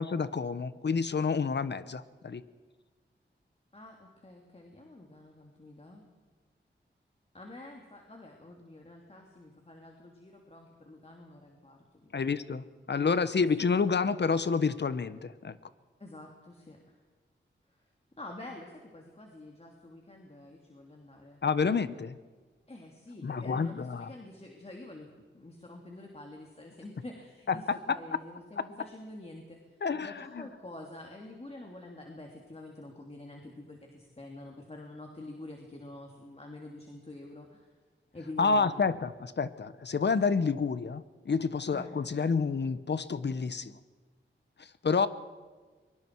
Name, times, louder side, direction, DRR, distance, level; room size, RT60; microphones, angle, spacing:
voice 1, 0.0-2.4 12.1-15.6 21.4-22.2 23.2-24.1 27.5-28.0 29.8-30.5 38.4-43.8 44.6-45.1, left 5 dB, 60° left, 13 dB, 1.1 m, -29 dB
voice 2, 3.7-6.0 7.3-12.4 16.0-17.0 17.7-17.8 18.2-21.4 22.7-25.1 25.3-37.7 38.1-38.8 41.7-42.0 45.0-45.1, left 2 dB, 30° left, 1 dB, 2.8 m, -47 dB
24.0 x 23.5 x 4.7 m, 1.4 s
wide cardioid pair, 95°, 20 cm